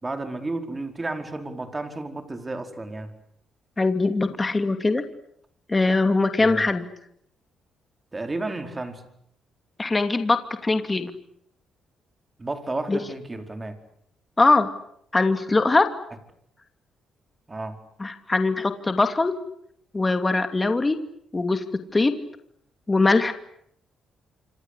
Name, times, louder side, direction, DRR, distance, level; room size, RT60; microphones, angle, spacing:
voice 1, 0.0-3.1 6.4-6.6 8.1-9.0 12.4-13.7 17.5-17.8, right 2 dB, 20° right, 6 dB, 4.8 m, -32 dB
voice 2, 3.8-5.0 5.7-6.8 9.8-11.1 12.9-13.0 14.4-14.7 15.1-15.9 18.0-19.3 19.9-21.0 21.3-21.6 21.9-22.1 22.9-23.3, left 3 dB, 20° left, 8 dB, 2.8 m, -21 dB
27.5 x 26.0 x 8.3 m, 0.70 s
cardioid pair, 90°, 0 cm